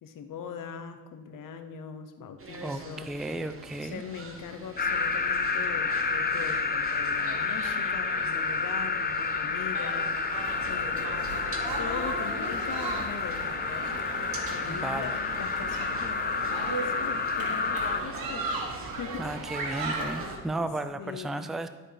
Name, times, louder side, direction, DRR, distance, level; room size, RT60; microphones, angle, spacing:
voice 1, 0.0-3.1 3.8-10.2 10.7-11.4 11.8-13.9 14.5-18.6 18.8-19.3 19.7-20.1 20.6-21.5, left 7 dB, 60° left, 7 dB, 0.9 m, -41 dB
sound 1, 2.4-20.4, right 3 dB, 35° right, 1.2 m, -45 dB
voice 2, 2.6-4.0 14.7-15.2 19.2-21.7, right 2 dB, ahead, 11 dB, 0.4 m, -34 dB
sound 2, 4.8-18.0, left 4 dB, 25° left, 0.8 m, -30 dB
sound 3, 10.3-20.4, right 3 dB, 70° right, 1.4 m, -37 dB
12.5 x 4.3 x 3.4 m, 1.3 s
supercardioid pair, 60°, 36 cm